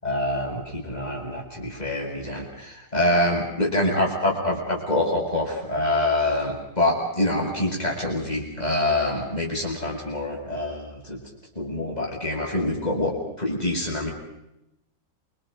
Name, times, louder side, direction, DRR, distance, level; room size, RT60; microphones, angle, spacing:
voice 1, 0.0-11.2 11.5-14.1, left 1 dB, 20° left, -1 dB, 8.0 m, -25 dB
29.0 x 27.0 x 5.3 m, 0.87 s
omnidirectional pair, 2.0 m